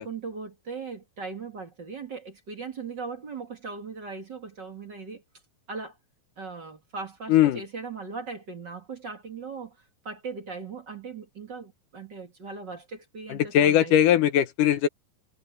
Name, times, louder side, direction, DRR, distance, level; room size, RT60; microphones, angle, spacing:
voice 1, 0.0-5.2 5.7-6.0 6.4-14.0, right 4 dB, 35° right, 2.4 m, -39 dB
voice 2, 7.3-7.6 13.3-14.9, left 11 dB, 75° left, 2.4 m, -20 dB
omnidirectional pair, 3.9 m